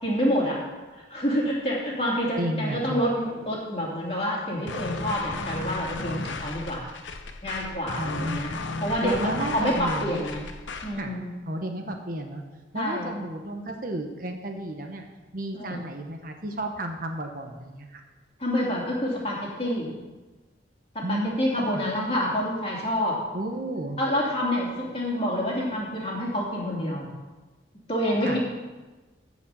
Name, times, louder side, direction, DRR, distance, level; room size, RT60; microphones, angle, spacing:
voice 1, 0.0-0.6 0.9-6.9 7.4-8.5 8.8-10.4 10.8-11.3 12.7-13.1 15.5-15.8 18.4-19.9 20.9-23.2 24.0-27.1 27.9-28.4, equal, 30° left, -4 dB, 2.8 m, -27 dB
voice 2, 2.4-3.1 8.0-8.4 9.0-10.2 11.0-11.1 11.5-12.4 12.7-15.0 15.3-18.0 21.0-21.8 23.3-24.0 28.2-28.4, right 1 dB, 45° right, 4 dB, 1.1 m, -32 dB
sound 1, 4.7-11.0, left 3 dB, 80° left, 0.9 m, -35 dB
15.0 x 5.2 x 6.9 m, 1.2 s
head